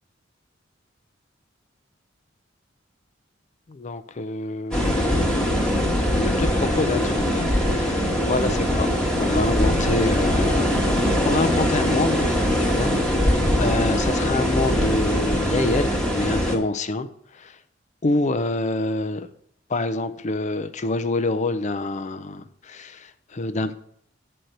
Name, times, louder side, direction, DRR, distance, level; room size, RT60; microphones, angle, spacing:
voice 1, 3.7-5.7 6.0-12.3 12.6-17.1 17.3-17.6 18.0-19.3 19.7-23.7, left 2 dB, 40° left, 11 dB, 0.5 m, -27 dB
sound 1, 4.7-16.6, equal, 5° left, 1.3 m, -22 dB
7.9 x 4.4 x 6.5 m, 0.69 s
head